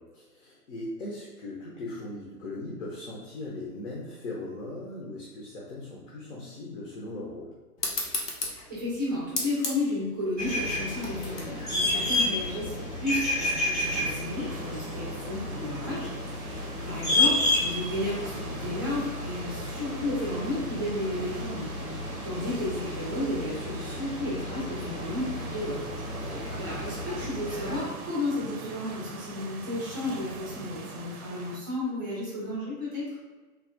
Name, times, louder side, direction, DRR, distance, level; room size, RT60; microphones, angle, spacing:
voice 1, 0.0-7.5 16.7-17.2 22.1-22.3 26.1-26.7, left 2 dB, 55° left, -4 dB, 0.7 m, -39 dB
sound 1, 7.8-12.9, left 2 dB, 85° left, 0.8 m, -36 dB
voice 2, 8.4-25.8 26.2-33.1, left 1 dB, 15° right, -5 dB, 0.5 m, -33 dB
sound 2, 10.4-27.8, left 2 dB, 15° left, 0.7 m, -31 dB
sound 3, 13.8-31.6, right 4 dB, 65° right, 0.5 m, -42 dB
3.3 x 2.2 x 2.5 m, 1.3 s
figure-of-eight pair, 120°, 46 cm